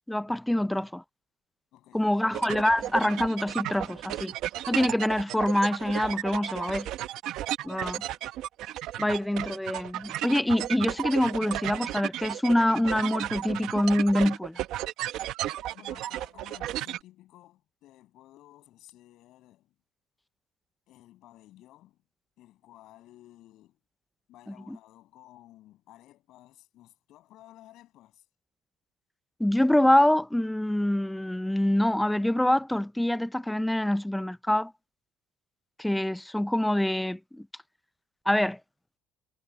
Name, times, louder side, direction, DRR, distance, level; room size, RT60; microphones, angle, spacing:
voice 1, 0.1-0.9 1.9-4.3 4.7-6.9 7.6-8.0 9.0-14.6 24.5-24.8 29.4-34.7 35.8-37.5 38.3-38.6, left 1 dB, 5° left, 0.4 m, -25 dB
voice 2, 1.7-2.3 7.6-8.2 15.7-19.7 20.9-22.0 22.4-23.8 24.3-28.2, left 15 dB, 50° left, 7.7 m, -54 dB
sound 1, 2.3-17.0, right 13 dB, 50° right, 0.9 m, -34 dB
cardioid pair, 180°, 0 cm